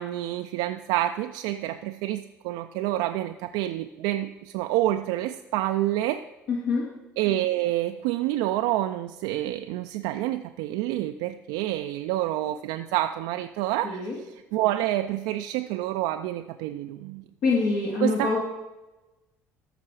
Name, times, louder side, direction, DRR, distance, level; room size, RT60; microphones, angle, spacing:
voice 1, 0.0-6.2 7.2-14.1 14.5-17.2 18.0-18.4, right 14 dB, 65° right, 7 dB, 0.4 m, -28 dB
voice 2, 6.5-6.9 13.8-14.2 17.4-18.4, left 4 dB, 60° left, -5 dB, 2.3 m, -25 dB
14.0 x 6.0 x 4.8 m, 1.0 s
hypercardioid pair, 55°, 8 cm